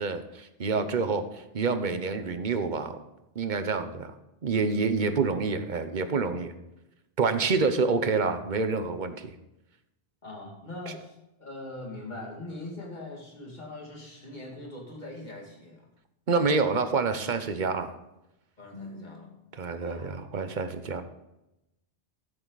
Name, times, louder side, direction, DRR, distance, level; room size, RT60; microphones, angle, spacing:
voice 1, 0.0-3.0 3.3-4.1 4.4-6.5 7.2-9.3 16.3-18.0 19.6-21.0, right 4 dB, 50° right, 9 dB, 1.0 m, -27 dB
voice 2, 10.2-15.9 18.6-19.4 19.8-20.3, left 2 dB, 45° left, -1 dB, 2.6 m, -41 dB
13.5 x 7.8 x 4.0 m, 0.92 s
omnidirectional pair, 1.1 m